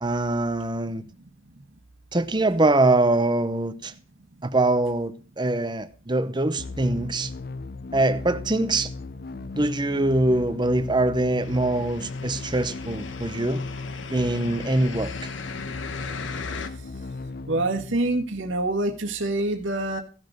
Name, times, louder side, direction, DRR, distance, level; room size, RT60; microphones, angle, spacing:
voice 1, 0.0-1.0 2.1-3.9 4.4-7.3 7.9-8.9 9.5-13.6 14.1-15.3, right 2 dB, 20° right, 0.7 m, -23 dB
sound 1, 6.6-18.5, left 3 dB, 45° left, 0.5 m, -37 dB
sound 2, 11.4-16.7, left 5 dB, 65° left, 1.2 m, -38 dB
voice 2, 17.5-20.0, right 2 dB, 70° right, 1.6 m, -26 dB
15.5 x 6.4 x 6.6 m
head